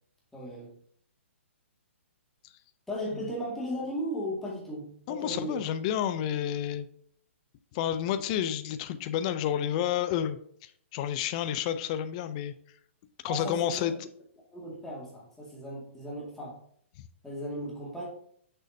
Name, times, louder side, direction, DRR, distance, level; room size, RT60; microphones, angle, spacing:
voice 1, 0.3-0.7 2.9-5.6 13.3-14.0 14.5-16.6 17.2-18.1, equal, 5° left, -5 dB, 1.9 m, -36 dB
voice 2, 5.1-6.9 7.7-12.5 13.2-13.9, left 10 dB, 30° left, 10 dB, 0.4 m, -30 dB
6.5 x 6.2 x 2.7 m, 0.62 s
hypercardioid pair, 150°, 7 cm